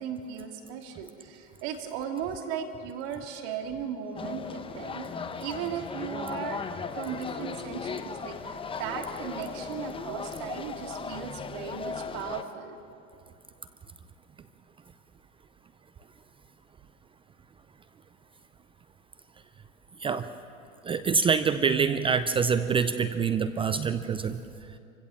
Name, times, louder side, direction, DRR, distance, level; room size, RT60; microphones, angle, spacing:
voice 1, 0.0-5.1 5.4-6.6 6.9-12.8, right 8 dB, 55° right, 4 dB, 2.8 m, -37 dB
sound 1, 4.2-12.4, left 5 dB, 15° left, 0.9 m, -37 dB
voice 2, 20.8-24.4, right 6 dB, 15° right, 11 dB, 0.5 m, -25 dB
26.5 x 16.0 x 7.3 m, 2.6 s
hypercardioid pair, 115°, 40 cm